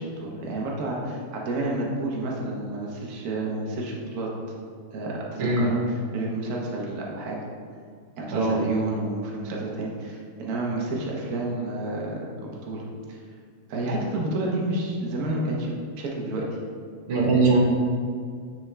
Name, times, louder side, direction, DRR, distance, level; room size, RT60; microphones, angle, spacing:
voice 1, 0.0-4.3 4.9-5.8 6.1-7.4 8.2-13.2 13.7-16.4, right 2 dB, 55° right, -2 dB, 1.2 m, -30 dB
voice 2, 8.3-8.6 17.1-17.6, right 3 dB, 80° right, -2 dB, 2.0 m, -21 dB
8.8 x 3.8 x 3.3 m, 2.2 s
omnidirectional pair, 2.4 m